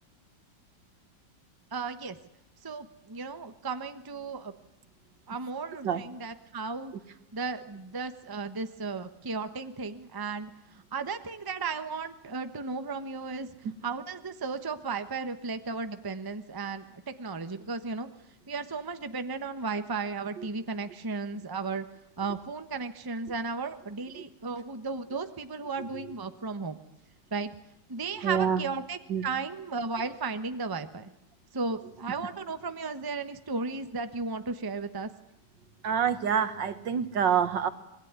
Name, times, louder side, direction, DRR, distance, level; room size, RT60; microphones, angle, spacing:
voice 1, 1.7-2.2 2.6-4.5 5.3-6.9 7.3-13.5 13.8-18.1 18.5-21.9 22.2-26.8 27.3-27.5 27.9-31.1 31.5-35.1, right 4 dB, 15° right, 9 dB, 0.9 m, -35 dB
voice 2, 28.2-28.6 29.1-29.2 35.8-37.7, right 7 dB, 70° right, 11 dB, 2.1 m, -26 dB
26.5 x 22.5 x 9.6 m, 0.80 s
omnidirectional pair, 2.1 m